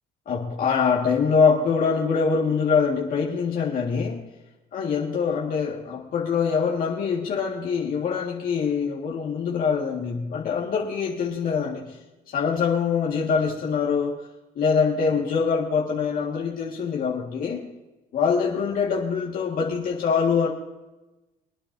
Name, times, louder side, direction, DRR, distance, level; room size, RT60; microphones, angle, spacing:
voice 1, 0.3-4.2 4.7-12.0 12.3-14.2 14.6-17.7 18.1-20.5, left 6 dB, 55° left, -2 dB, 1.8 m, -24 dB
25.5 x 9.5 x 2.7 m, 1.1 s
cardioid pair, 110°, 17 cm